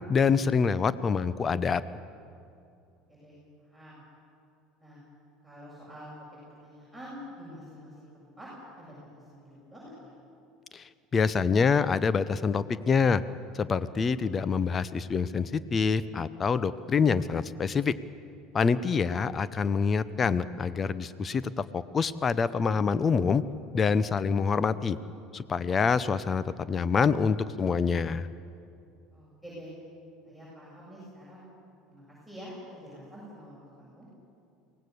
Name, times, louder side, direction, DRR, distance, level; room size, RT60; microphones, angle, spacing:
voice 1, 0.1-1.8 10.7-13.2 13.5-17.9 18.5-23.4 23.7-25.0 25.3-28.3, left 5 dB, 30° left, 16 dB, 0.9 m, -26 dB
voice 2, 3.1-4.0 4.8-5.0 5.4-6.1 6.5-8.5 8.8-10.1 29.1-29.7 30.2-31.4 31.9-34.1, equal, 5° left, -7 dB, 7.6 m, -47 dB
23.5 x 18.0 x 6.9 m, 2.6 s
hypercardioid pair, 70°, 0 cm